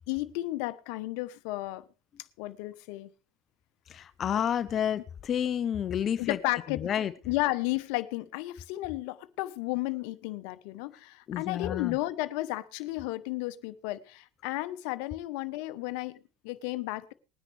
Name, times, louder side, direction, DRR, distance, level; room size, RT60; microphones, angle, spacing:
voice 1, 0.1-1.8 2.4-3.1 6.2-6.9 7.3-17.1, left 18 dB, 65° left, 1.0 m, -33 dB
voice 2, 3.9-6.4 6.7-7.1 11.3-12.0, left 9 dB, 40° left, 0.8 m, -30 dB
20.5 x 10.0 x 3.4 m
hypercardioid pair, 80°, 0 cm